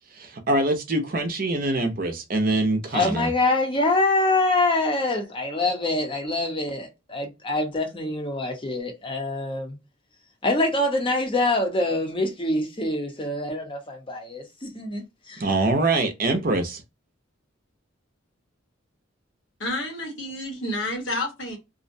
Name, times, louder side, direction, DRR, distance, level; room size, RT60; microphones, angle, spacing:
voice 1, 0.2-3.3 15.4-16.8, right 2 dB, 45° right, 0.5 m, -24 dB
voice 2, 2.9-9.8 10.4-15.4, left 2 dB, 25° left, 0.7 m, -25 dB
voice 3, 19.6-21.6, left 1 dB, 70° left, 1.0 m, -30 dB
2.5 x 2.1 x 2.6 m
head